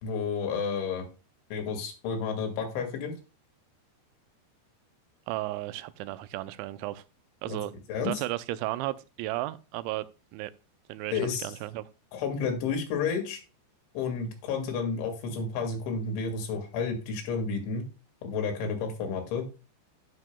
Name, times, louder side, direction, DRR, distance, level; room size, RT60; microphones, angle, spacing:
voice 1, 0.0-1.1 1.5-3.1 7.5-7.6 7.9-8.1 11.1-11.5 12.1-13.4 13.9-17.9 18.2-19.5, left 5 dB, 85° left, 4.5 m, -31 dB
voice 2, 5.3-7.0 7.4-7.7 8.0-10.1 10.3-10.5 10.9-11.8, right 16 dB, 90° right, 3.0 m, -34 dB
16.5 x 6.0 x 2.2 m
omnidirectional pair, 5.2 m